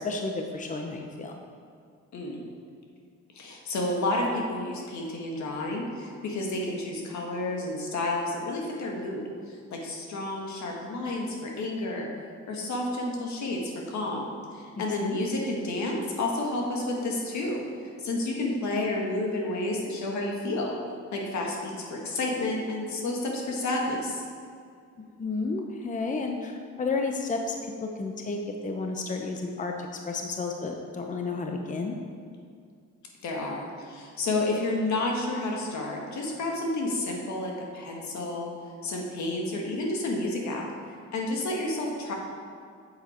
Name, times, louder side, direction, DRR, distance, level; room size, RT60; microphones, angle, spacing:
voice 1, 0.0-1.4 14.8-15.2 25.2-32.0, left 3 dB, 25° left, 3 dB, 0.8 m, -32 dB
voice 2, 3.4-12.1 12.5-17.6 18.0-20.7 21.1-24.2 33.2-38.5 38.8-40.6 41.1-42.1, left 2 dB, 70° left, 0 dB, 1.8 m, -30 dB
7.9 x 7.5 x 4.5 m, 2.2 s
cardioid pair, 90°, 30 cm